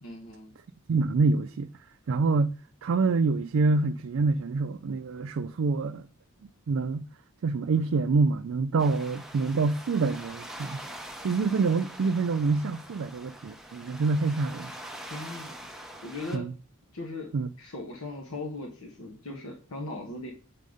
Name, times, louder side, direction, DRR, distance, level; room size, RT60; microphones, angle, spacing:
voice 1, 0.0-0.5 15.1-15.6 16.0-16.5 16.9-17.3 17.6-20.3, left 2 dB, 80° left, 1.2 m, -38 dB
voice 2, 0.9-1.7 2.1-2.5 2.8-6.0 6.7-7.1 7.4-10.8 11.2-14.7 16.3-16.5 17.3-17.5, right 4 dB, 65° right, 0.4 m, -26 dB
sound 1, 8.8-16.4, right 1 dB, ahead, 0.7 m, -44 dB
7.4 x 4.0 x 4.9 m
head